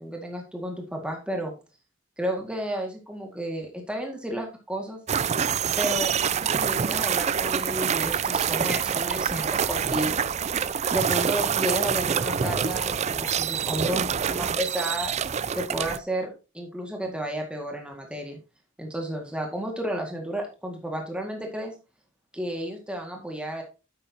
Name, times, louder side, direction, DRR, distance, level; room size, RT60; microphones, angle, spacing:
voice 1, 0.0-1.5 2.2-5.0 5.8-10.2 10.9-15.1 15.5-18.4 18.8-21.7 22.3-23.6, right 1 dB, 5° right, 1 dB, 2.0 m, -32 dB
sound 1, 5.1-16.0, right 7 dB, 35° right, 0.4 m, -26 dB
10.5 x 8.5 x 2.9 m, 0.30 s
head